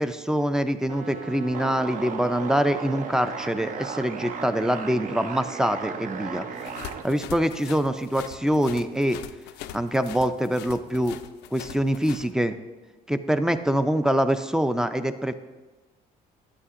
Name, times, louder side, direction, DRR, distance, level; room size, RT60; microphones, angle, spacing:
voice 1, 0.0-6.5 7.0-9.2 9.7-11.2 11.5-12.6 13.1-15.3, equal, 5° right, 10 dB, 0.4 m, -24 dB
sound 1, 0.9-7.0, right 5 dB, 50° right, 0.6 m, -35 dB
sound 2, 6.6-12.3, left 11 dB, 90° left, 0.4 m, -42 dB
11.0 x 8.9 x 2.5 m, 1.2 s
cardioid pair, 110°, 17 cm